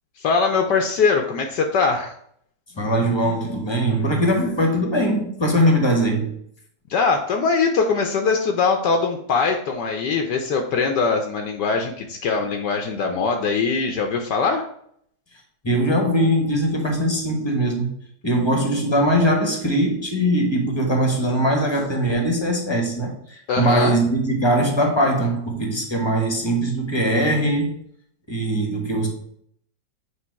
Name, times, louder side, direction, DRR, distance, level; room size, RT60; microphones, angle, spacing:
voice 1, 0.2-2.1 6.9-14.6 23.5-24.0, left 4 dB, 70° left, 4 dB, 1.2 m, -22 dB
voice 2, 2.7-6.3 15.6-17.9 18.2-27.7 28.3-29.1, right 1 dB, 20° left, 2 dB, 1.0 m, -21 dB
8.2 x 3.0 x 4.6 m, 0.66 s
omnidirectional pair, 2.0 m